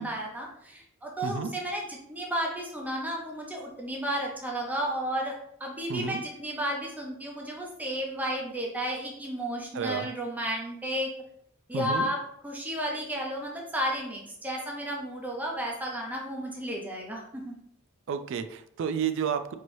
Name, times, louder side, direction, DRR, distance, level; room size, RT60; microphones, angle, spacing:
voice 1, 0.0-11.1 11.7-12.2 12.4-17.5, equal, 10° right, -1 dB, 0.6 m, -33 dB
voice 2, 5.9-6.2 9.7-10.1 11.7-12.1 18.1-19.5, right 7 dB, 60° right, 9 dB, 0.3 m, -31 dB
4.7 x 3.0 x 2.6 m, 0.69 s
head